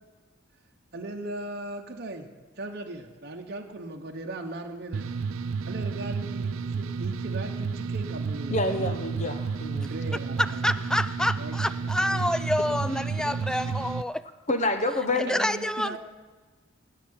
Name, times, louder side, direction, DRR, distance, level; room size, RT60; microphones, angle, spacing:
voice 1, 0.9-2.3 2.6-5.1 5.7-9.0 9.9-11.0 11.3-12.3 15.3-16.0, right 2 dB, 50° right, 2 dB, 1.0 m, -38 dB
sound 1, 4.9-14.0, right 5 dB, 85° right, 0.4 m, -31 dB
voice 2, 8.5-9.9 12.8-13.0 13.2-13.3 14.5-15.3, left 2 dB, 35° left, 6 dB, 1.0 m, -28 dB
voice 3, 10.4-14.2 15.3-16.0, left 1 dB, 5° left, 13 dB, 0.3 m, -27 dB
17.0 x 5.8 x 8.7 m, 1.4 s
head